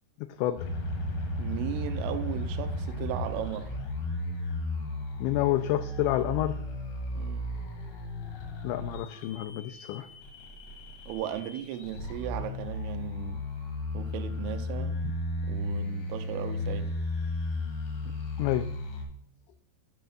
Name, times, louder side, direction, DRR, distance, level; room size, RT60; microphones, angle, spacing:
voice 1, 0.2-0.6 5.2-6.6 8.6-10.1 18.4-18.7, left 14 dB, 85° left, 2.5 m, -29 dB
sound 1, 0.6-19.0, left 2 dB, 65° left, 3.8 m, -34 dB
voice 2, 1.4-3.7 7.1-7.5 11.1-13.4 13.9-15.0 15.4-16.9 18.1-18.2, right 11 dB, 90° right, 3.1 m, -36 dB
10.5 x 9.3 x 2.4 m
omnidirectional pair, 5.6 m